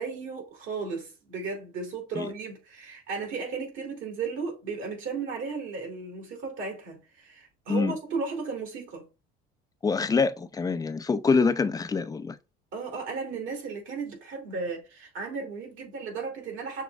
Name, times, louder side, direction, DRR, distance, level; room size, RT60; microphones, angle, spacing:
voice 1, 0.0-9.1 12.7-16.8, right 4 dB, 70° right, 2.4 m, -35 dB
voice 2, 9.8-12.4, left 4 dB, 15° left, 0.5 m, -25 dB
6.3 x 2.3 x 3.3 m
supercardioid pair, 95°, 21 cm